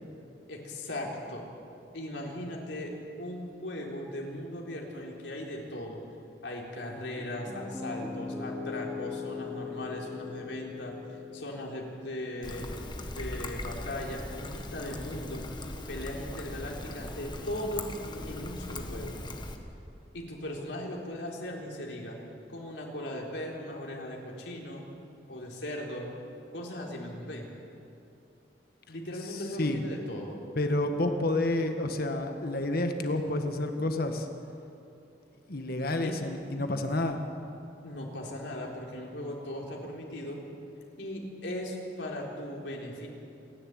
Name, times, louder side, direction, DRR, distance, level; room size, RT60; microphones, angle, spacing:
voice 1, 0.5-1.4 1.9-6.0 6.4-12.7 13.1-15.5 15.9-17.9 18.3-19.2 20.1-22.2 22.5-24.8 25.3-26.1 26.5-27.5 28.9-30.4 36.0-36.2 37.8-40.4 41.0-43.1, left 1 dB, 85° left, -1 dB, 3.8 m, -38 dB
Piano, 6.9-15.0, left 4 dB, 5° right, 2.8 m, -41 dB
Trickle dribble, 12.4-19.6, left 1 dB, 25° left, 1.5 m, -39 dB
voice 2, 29.3-29.8 30.5-34.3 35.5-37.2, left 2 dB, 60° left, 6 dB, 1.6 m, -29 dB
27.5 x 11.0 x 9.0 m, 2.8 s
head